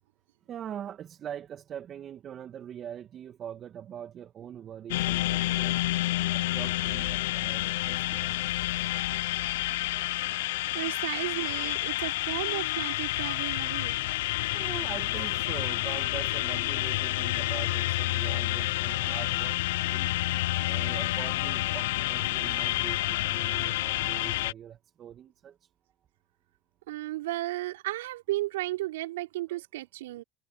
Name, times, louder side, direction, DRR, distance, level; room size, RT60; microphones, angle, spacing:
voice 1, 0.5-5.8 6.3-8.9 14.5-20.1 20.6-25.6, right 9 dB, 45° right, 1.9 m, -43 dB
sound 1, 4.9-24.5, left 17 dB, 80° left, 0.7 m, -29 dB
voice 2, 10.7-14.0 22.4-22.5 26.9-30.2, right 17 dB, 85° right, 4.4 m, -34 dB
hypercardioid pair, 85°, 0 cm